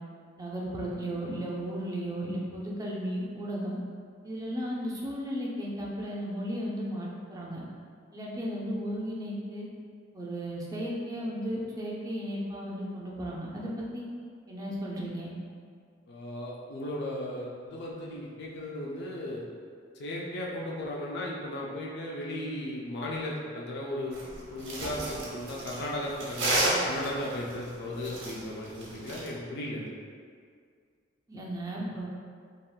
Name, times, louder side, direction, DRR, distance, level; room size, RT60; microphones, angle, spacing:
voice 1, 0.4-3.8 4.2-7.6 8.1-9.7 10.1-14.0 14.5-15.3 31.3-32.1, equal, 20° right, -4 dB, 0.4 m, -35 dB
voice 2, 16.1-19.4 20.0-24.2 24.5-29.9, left 1 dB, 65° left, -3 dB, 0.4 m, -36 dB
sound 1, 24.1-29.3, right 1 dB, 80° right, 0.8 m, -32 dB
3.4 x 2.3 x 2.3 m, 2.1 s
head